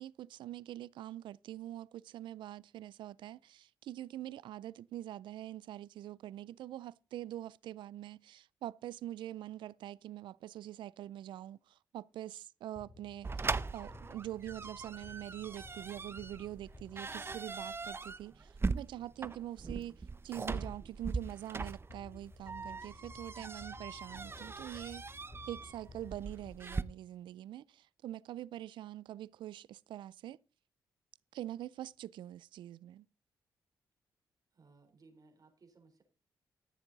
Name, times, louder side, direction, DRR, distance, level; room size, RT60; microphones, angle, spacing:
voice 1, 0.0-25.1 25.5-30.4 31.3-33.1, right 13 dB, 80° right, 0.4 m, -44 dB
sound 1, 12.7-17.9 21.9-27.1, left 3 dB, 40° left, 2.6 m, -56 dB
sound 2, 13.2-26.8, right 4 dB, 30° right, 0.7 m, -40 dB
voice 2, 34.5-36.0, right 3 dB, 50° right, 3.8 m, -62 dB
13.5 x 7.2 x 4.0 m
cardioid pair, 60°, 8 cm